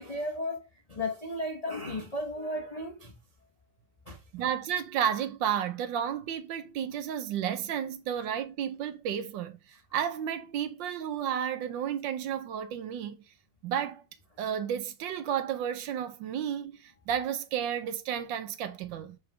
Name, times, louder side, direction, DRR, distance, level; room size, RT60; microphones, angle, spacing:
voice 1, 0.0-3.1 4.1-4.2, left 1 dB, 85° left, 0.3 m, -35 dB
voice 2, 4.3-9.6 9.9-13.2 13.6-14.0 14.4-19.2, right 9 dB, 70° right, 1.3 m, -32 dB
7.2 x 4.9 x 3.3 m
omnidirectional pair, 2.3 m